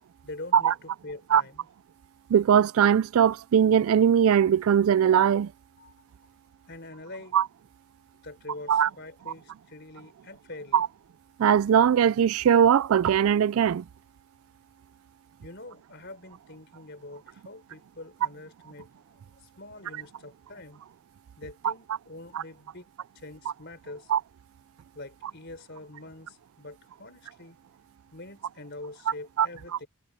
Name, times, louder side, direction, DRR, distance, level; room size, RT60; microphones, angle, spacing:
voice 1, 0.2-1.7 5.8-5.9 6.7-7.4 8.2-10.9 15.4-18.9 19.4-20.8 21.4-22.9 23.1-24.1 24.9-27.6 28.1-29.9, left 2 dB, 50° left, 4.3 m, -44 dB
voice 2, 2.3-5.5 7.3-7.4 8.7-8.9 10.7-10.9 11.4-13.8 21.6-21.7 22.3-22.4 24.1-24.2 29.4-29.5, right 8 dB, 75° right, 0.3 m, -20 dB
head